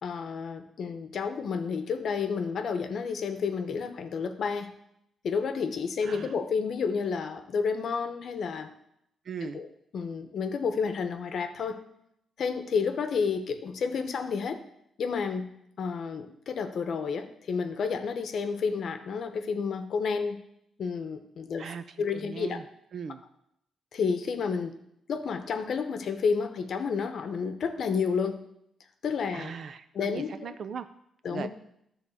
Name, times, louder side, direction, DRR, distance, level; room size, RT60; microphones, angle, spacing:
voice 1, 0.0-4.7 5.2-8.7 9.4-9.7 9.9-11.8 12.4-14.6 15.0-15.5 15.8-20.4 20.8-22.6 23.9-24.8 25.1-28.4 29.0-29.6 29.9-30.6 31.2-31.5, left 5 dB, 60° left, 8 dB, 0.8 m, -30 dB
voice 2, 9.3-9.6 21.6-21.8 22.1-22.6 22.9-23.2 29.3-30.9 31.3-31.5, right 6 dB, 55° right, 11 dB, 0.5 m, -38 dB
10.5 x 3.7 x 7.0 m, 0.77 s
cardioid pair, 120°, 0 cm